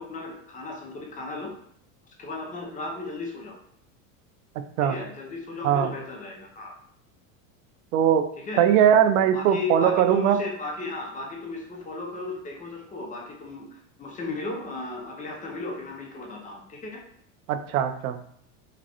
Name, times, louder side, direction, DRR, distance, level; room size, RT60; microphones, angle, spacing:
voice 1, 0.0-1.6 2.1-3.6 4.8-6.7 8.4-8.7 9.3-17.0, left 3 dB, 20° left, 1 dB, 0.6 m, -35 dB
voice 2, 7.9-8.3 8.6-10.4 17.5-18.2, right 9 dB, 80° right, 9 dB, 0.6 m, -20 dB
5.0 x 2.1 x 2.8 m, 0.67 s
supercardioid pair, 130°, 41 cm